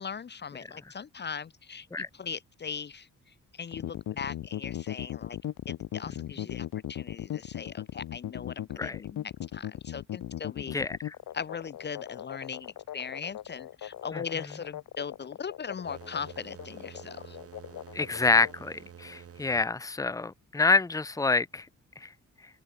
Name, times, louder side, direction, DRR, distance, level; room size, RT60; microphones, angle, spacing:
voice 1, 0.0-3.1 3.5-5.4 5.7-10.8 11.3-17.4, left 6 dB, 30° left, 1.1 m, -39 dB
sound 1, 3.7-18.5, left 12 dB, 70° left, 1.9 m, -38 dB
voice 2, 10.7-11.1 14.1-14.2 17.9-21.7 22.0-22.1, left 3 dB, 10° left, 1.1 m, -27 dB
sound 2, 15.8-19.7, right 8 dB, 45° right, 4.2 m, -49 dB
open air
wide cardioid pair, 170°, 32 cm